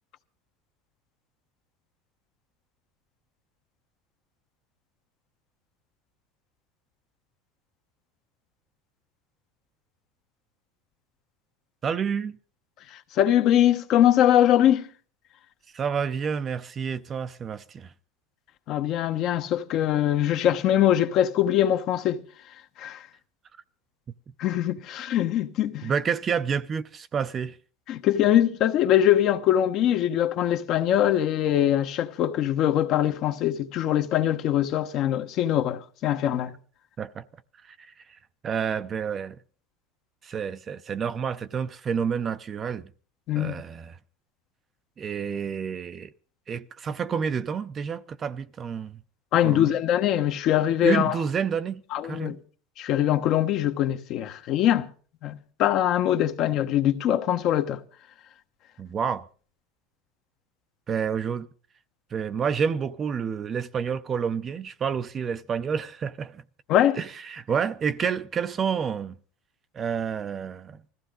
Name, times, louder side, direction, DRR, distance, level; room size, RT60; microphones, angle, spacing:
voice 1, 11.8-12.4 15.7-17.9 25.8-27.6 37.0-37.2 37.7-37.9 38.4-39.4 40.2-42.9 43.3-44.0 45.0-46.1 46.5-49.0 49.4-49.7 50.8-52.4 58.8-59.2 60.9-61.5 62.1-66.4 67.0-69.2 69.7-70.8, right 7 dB, 25° right, 0.6 m, -29 dB
voice 2, 13.1-14.9 18.7-22.2 22.8-23.0 24.4-25.9 27.9-36.5 43.3-43.6 49.3-51.2 51.9-52.4 52.8-54.9 55.2-57.8 66.7-67.0, left 11 dB, 50° left, 1.1 m, -22 dB
20.0 x 15.0 x 3.9 m
supercardioid pair, 135°, 0 cm